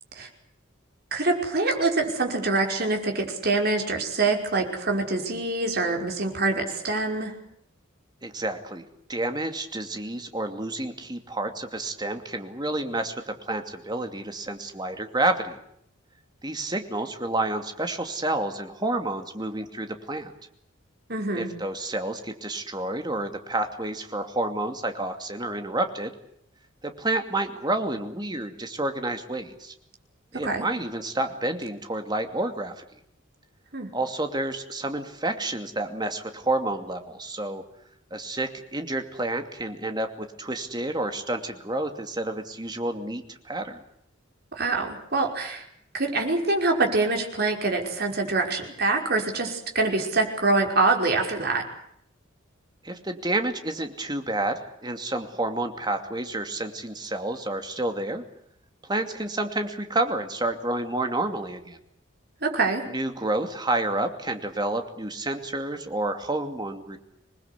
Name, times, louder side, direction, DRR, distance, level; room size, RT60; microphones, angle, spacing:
voice 1, 1.1-7.3 21.1-21.5 30.3-30.7 33.7-33.9 44.5-45.6 45.9-51.6 62.4-62.8, right 3 dB, 50° right, 3 dB, 5.4 m, -25 dB
voice 2, 8.2-8.8 9.1-15.6 16.4-20.3 21.3-26.1 26.8-29.7 30.3-32.8 33.9-37.6 38.1-43.8 52.8-58.2 58.8-61.8 62.9-67.0, right 2 dB, 20° right, 6 dB, 2.6 m, -29 dB
27.0 x 20.5 x 8.3 m, 0.71 s
head